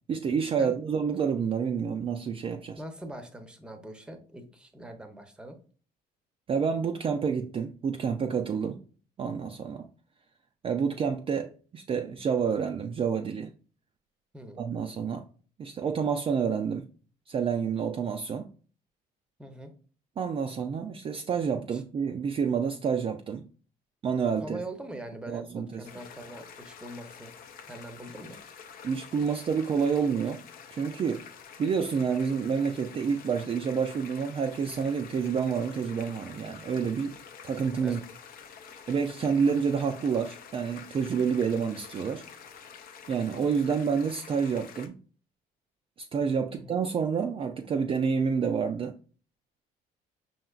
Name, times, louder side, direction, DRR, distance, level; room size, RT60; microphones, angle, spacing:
voice 1, 0.1-2.8 6.5-8.8 9.2-9.9 10.6-13.5 14.6-15.2 15.6-16.9 17.3-18.5 20.2-23.5 24.0-24.6 25.3-25.8 28.8-30.4 30.7-31.2 31.6-37.2 37.4-38.0 38.9-42.2 43.1-45.0 46.0-49.0, right 6 dB, 35° right, 0.4 m, -28 dB
voice 2, 2.8-5.6 14.3-14.6 19.4-19.7 21.7-21.8 24.4-27.3 27.7-28.4 37.8-38.1 46.5-46.8, right 1 dB, 5° right, 0.7 m, -43 dB
sound 1, 25.8-44.9, left 7 dB, 60° left, 0.6 m, -48 dB
5.6 x 2.9 x 2.3 m
cardioid pair, 110°, 17 cm